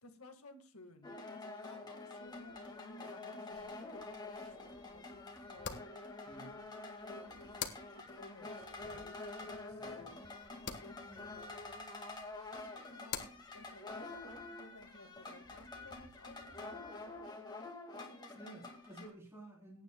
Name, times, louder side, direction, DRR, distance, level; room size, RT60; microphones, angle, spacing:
voice 1, 0.0-5.9 7.1-10.2 10.6-11.3 12.9-17.6 17.9-18.6, left 2 dB, 85° left, 5 dB, 1.8 m, -58 dB
sound 1, 1.0-19.1, left 2 dB, 20° left, 2.1 m, -47 dB
sound 2, 3.5-16.3, left 7 dB, 55° left, 1.4 m, -51 dB
voice 2, 6.3-6.6 9.7-10.0 18.3-19.8, right 1 dB, 10° right, -3 dB, 3.6 m, -53 dB
21.5 x 9.8 x 2.3 m, 0.33 s
head